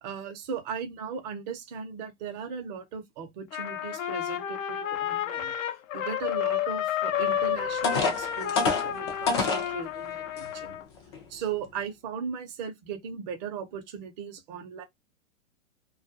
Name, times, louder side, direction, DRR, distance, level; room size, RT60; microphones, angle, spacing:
voice 1, 0.0-5.5 5.9-10.8 11.3-14.8, right 7 dB, 35° right, 0.6 m, -37 dB
Trumpet, 3.5-10.8, left 10 dB, 80° left, 0.6 m, -31 dB
sound 1, 7.3-7.4 7.8-9.7 10.4-10.5 11.0-11.2, left 4 dB, 25° left, 0.3 m, -26 dB
2.3 x 2.1 x 2.6 m
hypercardioid pair, 140°, 39 cm